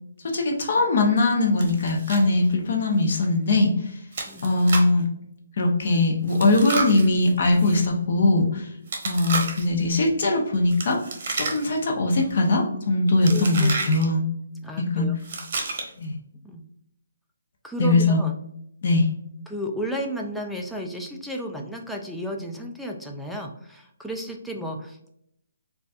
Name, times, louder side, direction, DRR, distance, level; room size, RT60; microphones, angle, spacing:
voice 1, 0.3-4.0 4.4-5.0 5.6-8.7 9.0-11.0 11.4-14.2 14.8-15.1 16.0-16.1 17.8-18.2 18.8-19.1, left 2 dB, 55° left, 2 dB, 0.7 m, -21 dB
Chewing mastication, 1.6-2.2 2.5-2.6 3.1-3.3 4.1-5.0 6.3-7.8 8.9-9.8 10.7-11.9 12.1-12.5 13.2-14.0 15.2-16.0, right 4 dB, 50° right, 0.8 m, -31 dB
voice 2, 13.3-13.9 14.6-15.1 16.4-16.6 17.6-18.4 19.5-25.1, equal, ahead, 0 dB, 0.3 m, -33 dB
4.0 x 2.3 x 2.3 m, 0.74 s
hypercardioid pair, 155°, 0 cm